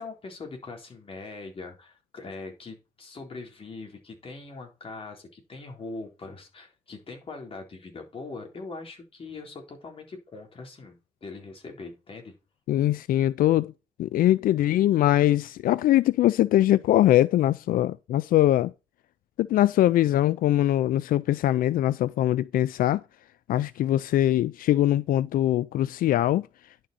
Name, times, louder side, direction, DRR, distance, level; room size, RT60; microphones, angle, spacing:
voice 1, 0.0-12.3, left 3 dB, 40° left, 3.8 m, -41 dB
voice 2, 12.7-13.7 14.0-18.7 19.4-23.0 23.5-26.5, left 13 dB, 85° left, 0.4 m, -22 dB
11.0 x 6.3 x 4.2 m
cardioid pair, 110°, 14 cm